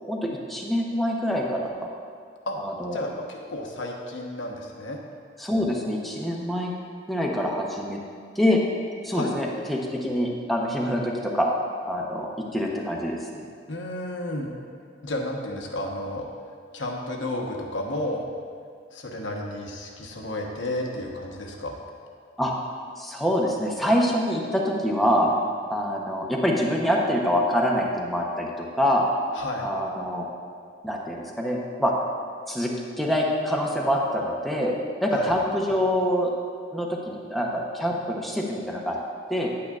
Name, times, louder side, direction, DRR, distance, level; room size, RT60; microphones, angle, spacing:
voice 1, 0.1-1.9 2.6-3.0 5.4-6.7 7.1-8.0 8.4-8.6 9.0-11.5 11.9-13.3 22.4-22.5 23.0-25.3 25.7-29.1 29.6-30.3 30.8-31.9 32.5-34.7 35.0-36.3 36.7-39.0 39.3-39.5, equal, ahead, -2 dB, 0.7 m, -25 dB
voice 2, 2.9-5.0 9.1-9.4 13.7-14.5 15.0-16.2 16.7-18.3 18.9-21.8 29.3-29.7 35.1-35.3, left 1 dB, 90° left, 1 dB, 1.0 m, -32 dB
10.0 x 8.6 x 2.4 m, 2.2 s
head